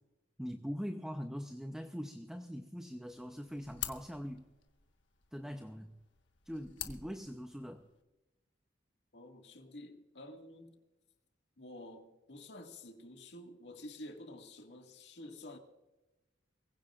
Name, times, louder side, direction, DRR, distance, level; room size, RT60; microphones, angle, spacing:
voice 1, 0.4-4.5 5.3-5.9 6.5-7.9, equal, 5° right, 0.7 m, -42 dB
sound 1, 3.0-8.0, left 11 dB, 90° left, 1.3 m, -48 dB
voice 2, 9.1-10.8 11.6-15.6, left 1 dB, 65° left, 2.0 m, -50 dB
23.5 x 16.0 x 2.5 m
head